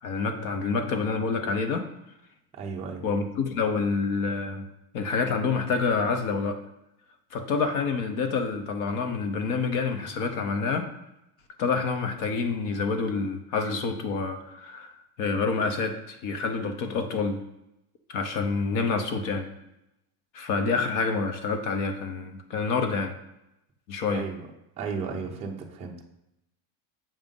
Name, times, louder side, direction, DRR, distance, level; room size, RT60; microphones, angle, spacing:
voice 1, 0.0-1.8 3.0-4.6 4.9-6.6 7.3-10.9 11.6-17.4 18.1-19.5 20.3-23.2 23.9-24.2, left 4 dB, 45° left, 6 dB, 0.7 m, -27 dB
voice 2, 2.6-3.0 24.1-24.4 24.8-26.0, right 5 dB, 15° right, -2 dB, 0.5 m, -34 dB
7.3 x 2.6 x 5.2 m, 0.85 s
cardioid pair, 165°, 45 cm